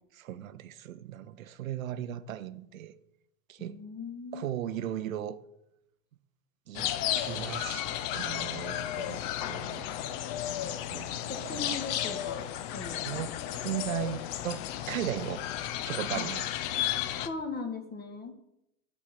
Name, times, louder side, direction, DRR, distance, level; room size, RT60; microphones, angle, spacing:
voice 1, 0.1-2.9 3.5-3.8 4.3-5.4 6.7-6.9 7.2-9.9 10.9-11.8 12.9-15.5 15.8-16.5, right 11 dB, 75° right, 0.6 m, -37 dB
voice 2, 3.6-4.6 11.3-12.4 12.7-13.3 16.1-16.3 17.2-18.3, left 4 dB, 25° left, 1.4 m, -39 dB
Tropical Birds, 6.7-17.3, left 12 dB, 45° left, 0.6 m, -33 dB
6.9 x 4.4 x 6.8 m
figure-of-eight pair, 85°, 41 cm